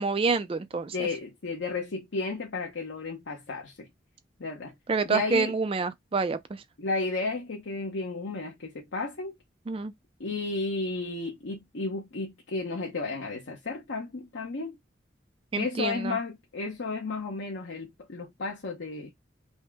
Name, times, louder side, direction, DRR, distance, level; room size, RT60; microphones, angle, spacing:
voice 1, 0.0-1.1 4.9-6.6 9.7-9.9 15.5-16.2, right 4 dB, 30° right, 0.3 m, -28 dB
voice 2, 0.9-3.9 4.4-4.7 5.0-5.5 6.8-9.3 10.2-14.8 15.6-19.1, left 3 dB, 85° left, 0.8 m, -33 dB
5.3 x 2.0 x 3.4 m
head